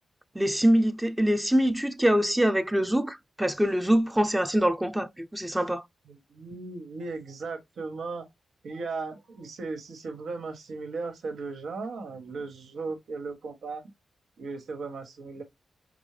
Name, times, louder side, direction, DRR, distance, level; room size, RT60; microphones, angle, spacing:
voice 1, 0.3-5.8, equal, 5° right, 0.5 m, -24 dB
voice 2, 6.1-8.3 8.6-13.8 14.4-15.4, right 4 dB, 85° right, 1.4 m, -37 dB
5.3 x 2.0 x 3.2 m
wide cardioid pair, 140°, 0 cm